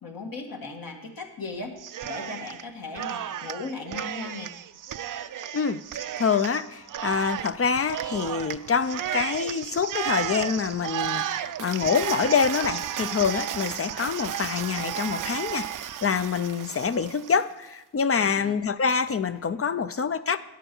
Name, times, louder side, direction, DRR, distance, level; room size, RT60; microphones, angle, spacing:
voice 1, 0.0-1.7 2.0-4.5 18.1-18.6, left 3 dB, 60° left, 2 dB, 1.6 m, -37 dB
Cheering, 1.8-2.6 2.9-17.4, right 10 dB, 55° right, 0.5 m, -33 dB
voice 2, 5.5-20.4, left 6 dB, 40° left, 13 dB, 0.4 m, -26 dB
11.0 x 7.9 x 4.4 m, 1.1 s
cardioid pair, 70°, 38 cm